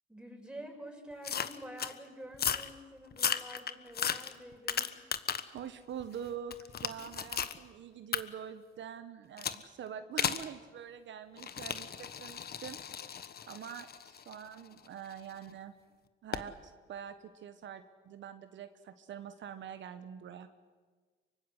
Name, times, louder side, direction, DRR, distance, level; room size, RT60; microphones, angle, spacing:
voice 1, 0.1-4.9, right 1 dB, 5° right, 2 dB, 6.4 m, -48 dB
sound 1, 1.2-1.9 2.3-2.7 3.1-5.6 6.0-7.6 8.1-8.2 9.4-9.6 10.2-10.5 11.4-15.3 16.3-16.5, left 8 dB, 50° left, 1.4 m, -35 dB
voice 2, 5.5-13.1 13.5-15.7 16.2-20.5, right 8 dB, 70° right, 9 dB, 1.4 m, -45 dB
24.5 x 24.0 x 8.2 m, 1.4 s
cardioid pair, 90°, 20 cm